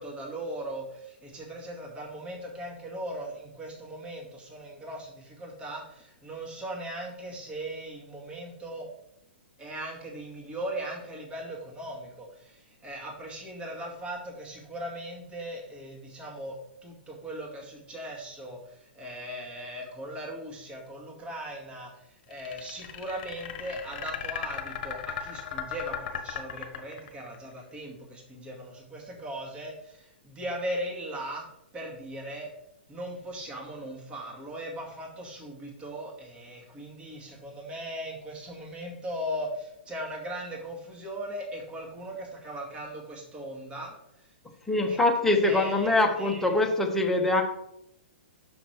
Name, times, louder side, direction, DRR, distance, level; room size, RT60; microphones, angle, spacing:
voice 1, 0.0-8.9 9.6-31.4 31.7-32.5 32.9-44.3 44.8-45.0 45.4-46.6, right 1 dB, 15° right, -1 dB, 2.0 m, -38 dB
sound 1, 22.3-27.4, left 8 dB, 50° left, 1.2 m, -36 dB
voice 2, 44.7-47.4, left 2 dB, 5° left, 1 dB, 1.2 m, -23 dB
6.1 x 5.9 x 4.5 m, 0.79 s
figure-of-eight pair, 110°, 6 cm